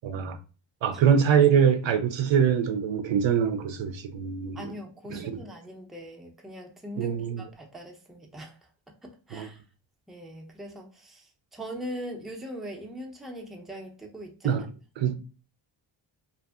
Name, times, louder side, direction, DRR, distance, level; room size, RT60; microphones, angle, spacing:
voice 1, 0.0-0.4 0.8-4.7 5.1-5.3 7.0-7.4 9.3-9.5 14.4-14.7 15.0-15.1, right 8 dB, 70° right, 0.5 m, -24 dB
voice 2, 4.5-8.7 9.0-9.6 10.1-14.7, equal, ahead, 0.5 m, -41 dB
2.6 x 2.5 x 2.3 m
cardioid pair, 75°, 48 cm